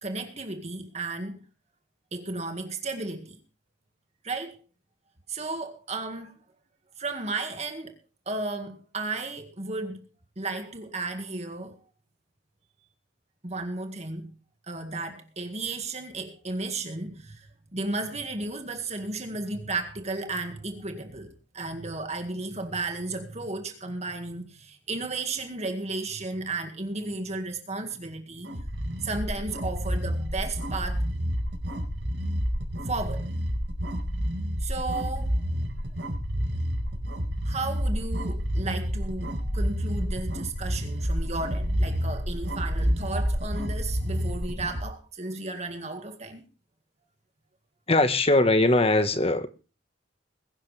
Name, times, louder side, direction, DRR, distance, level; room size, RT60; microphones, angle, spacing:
voice 1, 0.0-1.4 2.1-3.4 4.2-4.6 5.3-6.4 7.0-8.0 8.3-10.1 10.4-11.8 13.4-14.3 14.7-28.5 29.0-31.1 32.8-33.3 34.6-35.4 37.5-46.4, right 3 dB, 35° right, 1.9 m, -34 dB
sound 1, 28.4-44.8, equal, 65° right, 4.7 m, -29 dB
voice 2, 47.9-49.5, left 2 dB, 30° left, 1.3 m, -21 dB
21.5 x 12.0 x 3.4 m
head